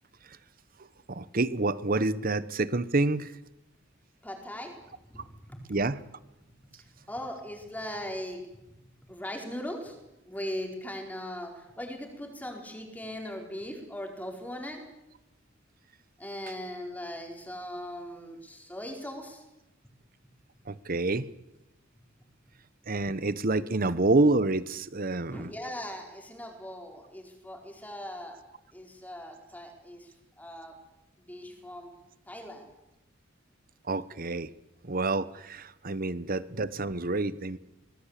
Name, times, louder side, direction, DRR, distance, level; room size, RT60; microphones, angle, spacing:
voice 1, 1.1-3.3 5.7-6.0 20.7-21.3 22.9-25.5 33.9-34.5 34.8-37.6, right 2 dB, 45° right, 16 dB, 1.0 m, -28 dB
voice 2, 4.2-5.6 7.1-8.4 9.1-10.0 10.2-14.8 16.2-19.4 25.3-28.4 28.7-30.1 30.4-30.7 31.3-31.9 32.3-32.7, left 1 dB, 10° left, 2 dB, 4.7 m, -39 dB
24.5 x 19.5 x 8.4 m, 0.93 s
head